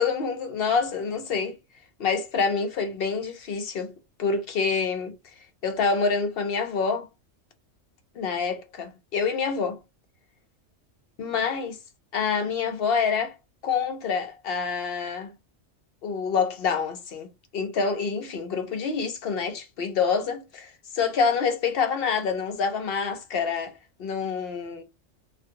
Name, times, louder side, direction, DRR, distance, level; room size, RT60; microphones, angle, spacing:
voice 1, 0.0-1.6 2.0-3.9 4.2-5.1 5.6-7.1 8.2-9.8 11.2-11.8 12.1-13.3 13.6-15.3 16.0-17.3 17.5-23.7 24.0-24.8, left 5 dB, 55° left, 0.8 m, -27 dB
2.5 x 2.3 x 2.7 m
omnidirectional pair, 1.3 m